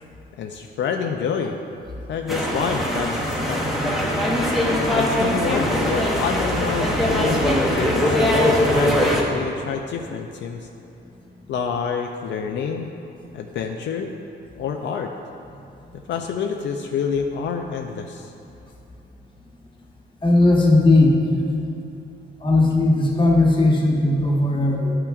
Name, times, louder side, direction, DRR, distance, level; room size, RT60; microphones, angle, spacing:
voice 1, 0.4-1.6 2.1-3.6 4.8-10.7 11.5-12.9 13.3-14.1 14.6-15.1 15.9-18.3, left 6 dB, 70° left, 3 dB, 0.4 m, -28 dB
sound 1, 2.3-9.2, left 1 dB, ahead, 0.8 m, -21 dB
voice 2, 20.2-21.3 22.4-25.0, left 2 dB, 25° left, -2 dB, 1.0 m, -17 dB
11.5 x 5.8 x 2.4 m, 2.8 s
wide cardioid pair, 160°, 20 cm